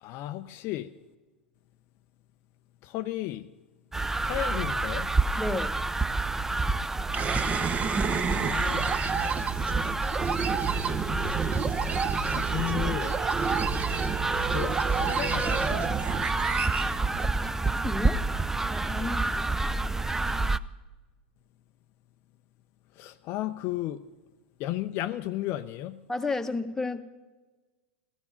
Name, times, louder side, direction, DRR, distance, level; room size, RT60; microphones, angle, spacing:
voice 1, 0.0-0.9 2.8-3.5 4.1-5.1 8.4-8.9 12.3-13.2 14.5-16.0 19.0-19.1 22.9-24.1 24.6-26.0, left 14 dB, 45° left, 9 dB, 0.5 m, -34 dB
sound 1, 3.9-20.6, right 3 dB, 5° right, 0.4 m, -29 dB
voice 2, 5.4-5.8 17.8-18.2 18.7-19.5 26.1-27.0, left 3 dB, 10° left, 7 dB, 1.0 m, -32 dB
sound 2, 7.1-17.8, right 6 dB, 25° right, 0.9 m, -30 dB
16.0 x 14.5 x 5.7 m, 1.3 s
hypercardioid pair, 95°, 6 cm